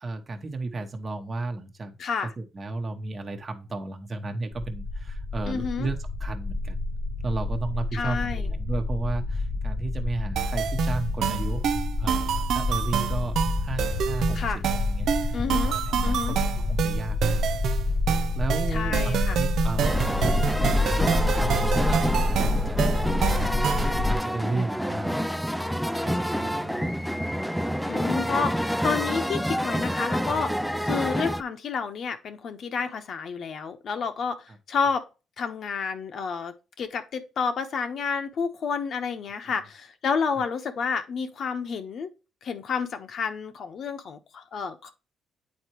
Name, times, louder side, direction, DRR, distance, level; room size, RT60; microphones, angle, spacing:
voice 1, 0.0-1.9 2.4-5.9 6.2-6.8 7.2-11.7 12.0-13.4 13.6-14.6 14.9-16.4 16.7-17.5 18.3-20.0 20.9-22.8 23.6-25.2 26.0-27.0, right 3 dB, 35° right, 1.1 m, -33 dB
voice 2, 2.0-2.3 5.5-5.9 7.9-8.5 14.3-14.6 15.3-15.8 16.0-16.4 18.7-19.4 27.9-35.1 35.4-42.1 42.4-44.9, left 5 dB, 60° left, 1.0 m, -30 dB
sound 1, 4.5-24.2, left 2 dB, 30° left, 1.0 m, -28 dB
sound 2, 10.4-24.0, right 8 dB, 70° right, 0.5 m, -28 dB
sound 3, 19.8-31.4, equal, ahead, 0.4 m, -28 dB
8.7 x 4.4 x 3.0 m
cardioid pair, 90°, 0 cm